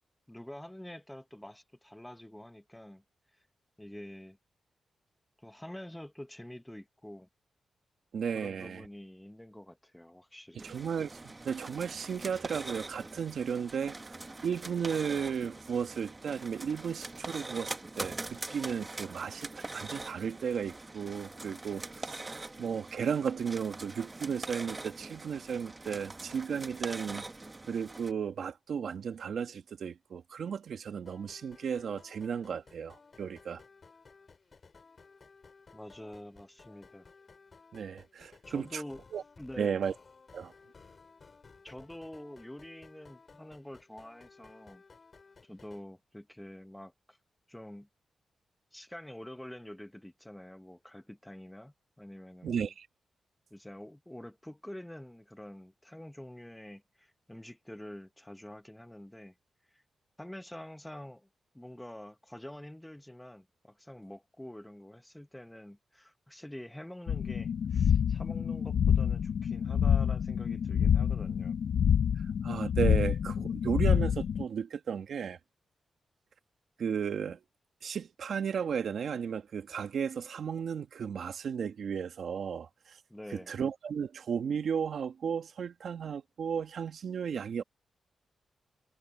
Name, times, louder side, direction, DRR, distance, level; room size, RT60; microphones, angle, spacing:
voice 1, 0.3-3.0 3.8-4.4 5.4-7.3 8.3-10.7 35.7-37.1 38.5-39.0 39.4-39.8 41.6-44.8 45.4-47.2 47.5-47.9 48.7-52.7 53.5-59.3 59.7-59.8 60.2-61.3 61.5-71.5 83.1-83.5, left 1 dB, 5° left, 1.2 m, -47 dB
voice 2, 8.1-8.8 10.6-27.3 27.7-33.6 37.7-38.8 39.1-39.2 39.6-39.9 40.3-40.5 52.4-52.9 72.4-75.4 76.8-77.4 77.8-83.0 83.3-87.6, right 7 dB, 75° right, 1.4 m, -34 dB
sound 1, 10.6-28.1, right 2 dB, 25° right, 1.2 m, -43 dB
sound 2, 31.1-45.8, left 4 dB, 45° left, 4.7 m, -57 dB
sound 3, 67.1-74.4, left 8 dB, 75° left, 0.5 m, -27 dB
cardioid pair, 100°, 0 cm